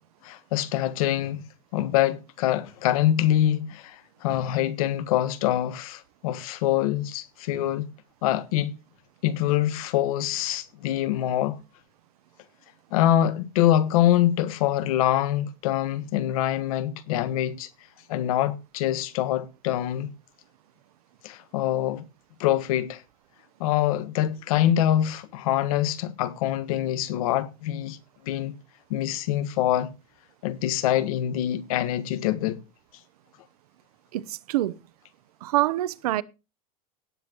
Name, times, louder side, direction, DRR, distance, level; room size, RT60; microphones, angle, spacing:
voice 1, 0.2-1.4 1.7-7.9 8.2-8.8 9.2-11.6 12.9-17.7 18.1-20.1 21.2-22.0 22.4-23.0 23.6-28.0 28.2-28.6 28.9-29.9 30.4-32.6, left 12 dB, 70° left, 1.5 m, -25 dB
voice 2, 34.1-34.7 35.4-36.2, right 15 dB, 90° right, 0.8 m, -25 dB
17.5 x 8.6 x 3.0 m
supercardioid pair, 160°, 19 cm